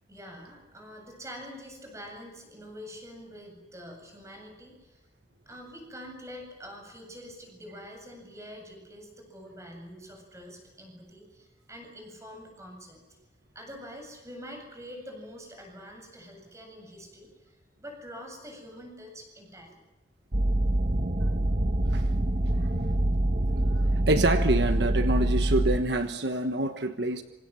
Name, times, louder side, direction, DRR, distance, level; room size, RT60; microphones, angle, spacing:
voice 1, 0.1-5.0 5.5-13.0 13.5-19.8, equal, 15° right, 3 dB, 8.0 m, -45 dB
sound 1, 20.3-25.8, right 1 dB, 45° right, 1.3 m, -25 dB
voice 2, 24.1-27.2, right 1 dB, 70° right, 8 dB, 1.3 m, -26 dB
27.0 x 26.0 x 7.7 m, 1.1 s
head